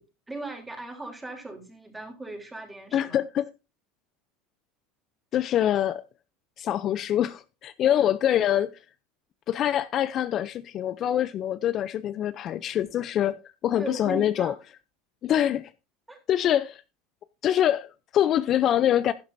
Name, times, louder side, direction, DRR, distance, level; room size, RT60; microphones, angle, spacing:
voice 1, 0.3-3.2 13.8-14.6 16.1-16.2, right 2 dB, 10° right, 3.4 m, -38 dB
voice 2, 2.9-3.5 5.3-6.0 6.6-8.7 9.5-13.4 13.6-14.5 15.2-15.7 16.3-16.8 17.4-19.1, left 11 dB, 40° left, 0.6 m, -24 dB
11.5 x 11.5 x 2.7 m
supercardioid pair, 135°, 0 cm